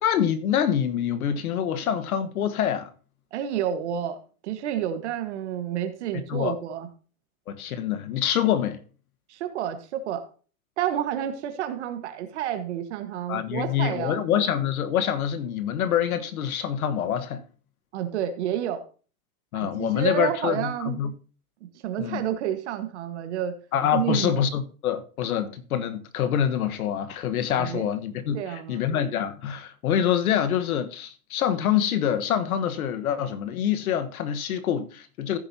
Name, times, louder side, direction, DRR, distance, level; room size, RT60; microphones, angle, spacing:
voice 1, 0.0-2.9 6.3-6.5 7.5-8.8 13.3-17.4 19.5-21.1 22.0-22.2 23.7-35.4, left 9 dB, 85° left, 1.4 m, -26 dB
voice 2, 3.3-4.2 4.4-6.9 9.3-10.3 10.8-14.5 17.9-18.8 19.5-21.0 21.6-23.6 23.9-24.4 27.6-27.9 28.3-28.8, right 10 dB, 50° right, 1.6 m, -30 dB
15.0 x 6.9 x 2.8 m
supercardioid pair, 175°, 42 cm